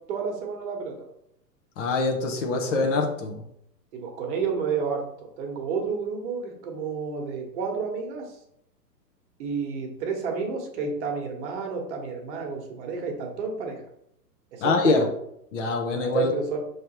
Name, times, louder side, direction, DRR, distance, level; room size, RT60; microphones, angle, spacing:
voice 1, 0.1-1.0 2.7-2.8 3.9-8.3 9.4-13.8 14.5-15.1 16.0-16.6, right 5 dB, 45° right, 2 dB, 1.2 m, -30 dB
voice 2, 1.8-3.4 14.6-15.0 15.5-16.3, left 3 dB, 45° left, 3 dB, 1.0 m, -24 dB
5.2 x 3.2 x 3.0 m, 0.75 s
hypercardioid pair, 120°, 50 cm